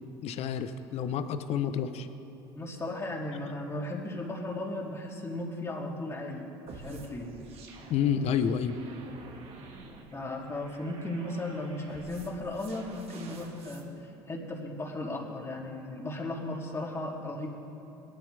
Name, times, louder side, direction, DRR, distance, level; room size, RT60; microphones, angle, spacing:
voice 1, 0.2-2.1 7.9-8.8, left 8 dB, 60° left, 10 dB, 0.9 m, -29 dB
voice 2, 2.5-7.3 10.1-17.5, left 1 dB, 20° left, -2 dB, 3.1 m, -36 dB
sound 1, 6.7-13.9, right 3 dB, 50° right, 2.1 m, -49 dB
21.0 x 13.0 x 3.5 m, 2.9 s
hypercardioid pair, 75°, 12 cm